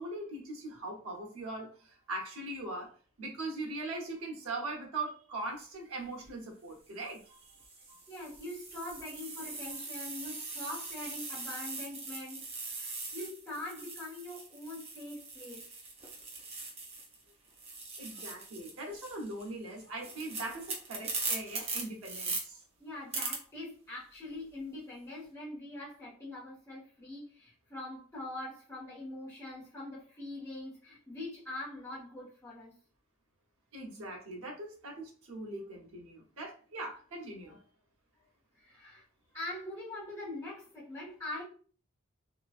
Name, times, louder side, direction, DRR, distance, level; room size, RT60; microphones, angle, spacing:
voice 1, 0.0-2.9 3.2-7.6 7.9-8.0 18.0-22.6 33.7-37.6, right 2 dB, 80° right, 0 dB, 0.9 m, -41 dB
sound 1, 6.0-6.3 7.0-17.2 17.5-22.4 23.1-23.4, right 3 dB, 30° right, 0.6 m, -41 dB
voice 2, 8.1-15.7 22.8-32.7 38.6-39.0 39.3-41.4, left 1 dB, 15° left, -7 dB, 1.2 m, -43 dB
3.0 x 2.5 x 2.4 m, 0.42 s
head